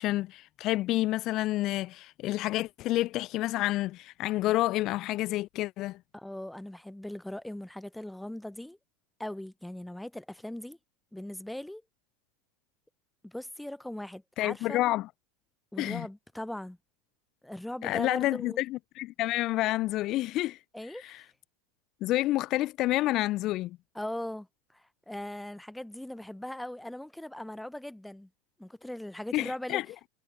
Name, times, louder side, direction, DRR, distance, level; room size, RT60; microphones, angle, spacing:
voice 1, 0.0-6.0 14.4-15.1 15.8-16.1 17.8-20.6 20.9-21.2 22.0-23.8 29.3-29.8, left 16 dB, 45° left, 0.4 m, -29 dB
voice 2, 6.1-8.8 9.2-10.8 11.1-11.8 13.2-14.8 15.7-16.8 17.4-18.6 20.7-21.2 23.9-24.5 24.7-28.3 28.6-29.8, left 1 dB, 5° left, 0.9 m, -39 dB
figure-of-eight pair, 80°, 0 cm